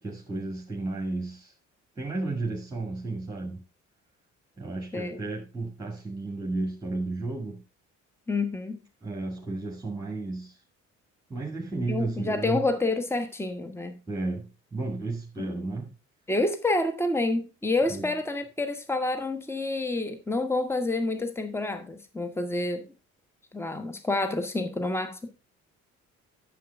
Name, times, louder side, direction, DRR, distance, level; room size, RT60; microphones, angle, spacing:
voice 1, 0.0-1.5 2.0-3.6 4.6-7.6 9.0-10.6 11.3-12.6 14.1-15.9 17.9-18.1, right 3 dB, 10° right, 2.4 m, -33 dB
voice 2, 4.9-5.2 8.3-8.8 11.9-14.0 15.4-15.5 16.3-22.9 23.5-25.2, left 2 dB, 5° left, 1.2 m, -28 dB
9.1 x 7.4 x 3.6 m
hypercardioid pair, 50°, 38 cm